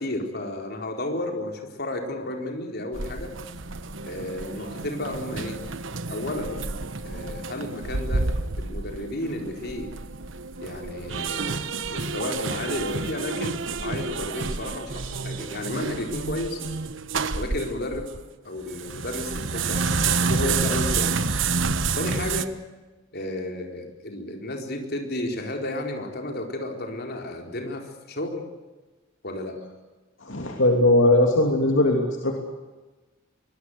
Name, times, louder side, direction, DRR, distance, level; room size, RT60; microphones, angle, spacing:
voice 1, 0.0-3.3 4.0-5.6 6.1-6.6 7.0-8.3 8.6-9.9 10.6-11.6 11.9-16.6 17.3-18.1 18.4-21.2 21.9-22.5 23.1-28.4 29.2-29.6, left 1 dB, 55° left, 3 dB, 4.3 m, -32 dB
sound 1, 2.9-18.2 18.6-22.5, right 4 dB, 70° right, 1.3 m, -29 dB
voice 2, 30.2-32.4, left 1 dB, 70° left, 2 dB, 3.1 m, -20 dB
24.0 x 21.0 x 8.1 m, 1.2 s
head